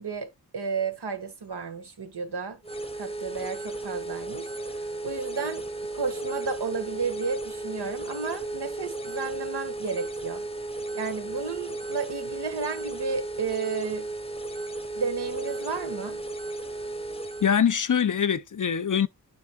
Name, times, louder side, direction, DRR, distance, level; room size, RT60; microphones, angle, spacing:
voice 1, 0.0-2.6 3.0-4.5 5.0-5.6 5.9-10.4 10.9-14.1 14.9-16.2, right 5 dB, 70° right, 1.4 m, -32 dB
sound 1, 2.6-17.6, right 2 dB, 15° left, 0.8 m, -35 dB
voice 2, 17.4-19.1, left 7 dB, 50° left, 0.6 m, -23 dB
9.3 x 6.0 x 2.3 m
wide cardioid pair, 70°, 42 cm